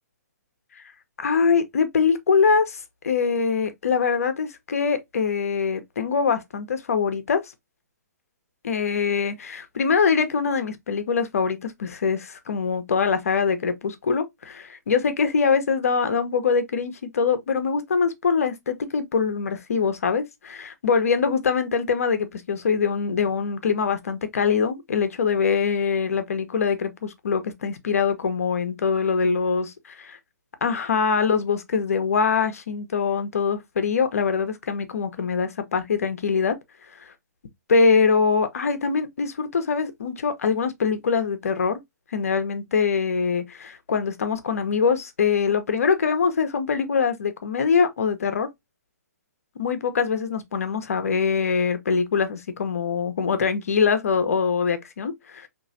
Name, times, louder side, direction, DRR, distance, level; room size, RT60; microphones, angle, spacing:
voice 1, 1.2-7.4 8.6-29.7 30.6-36.6 37.7-41.8 42.1-48.5 49.6-55.5, left 5 dB, 60° left, 0.9 m, -23 dB
4.9 x 3.1 x 2.7 m
figure-of-eight pair, 125°, 9 cm